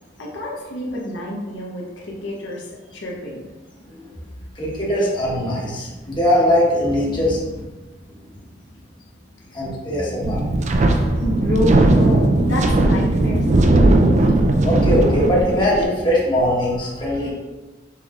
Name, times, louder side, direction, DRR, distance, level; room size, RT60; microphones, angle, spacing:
voice 1, 0.2-3.4 11.2-13.8, left 1 dB, 90° left, -3 dB, 0.9 m, -27 dB
voice 2, 4.5-7.6 9.5-10.5 11.1-11.2 13.9-17.3, equal, 25° left, -6 dB, 1.2 m, -21 dB
Wind, 10.2-15.8, right 2 dB, 40° right, 0.4 m, -17 dB
6.0 x 3.5 x 2.4 m, 1.2 s
head